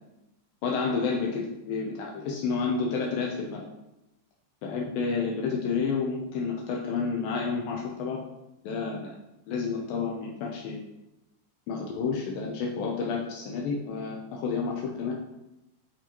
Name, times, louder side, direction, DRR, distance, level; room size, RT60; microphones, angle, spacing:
voice 1, 0.6-3.7 4.6-8.2 8.6-9.1 9.5-10.9 11.7-15.1, left 5 dB, 90° left, -1 dB, 2.0 m, -30 dB
10.0 x 5.4 x 3.0 m, 0.91 s
omnidirectional pair, 5.3 m